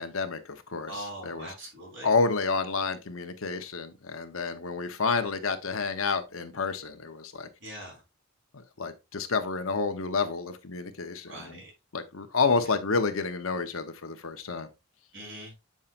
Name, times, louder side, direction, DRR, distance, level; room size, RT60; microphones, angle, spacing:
voice 1, 0.0-1.5 2.0-7.5 8.5-11.6 11.9-14.7, left 4 dB, 80° left, 0.9 m, -29 dB
voice 2, 0.9-2.1 7.6-8.0 11.3-11.7 15.1-15.5, right 1 dB, 60° right, 4.1 m, -41 dB
7.3 x 5.5 x 2.5 m
head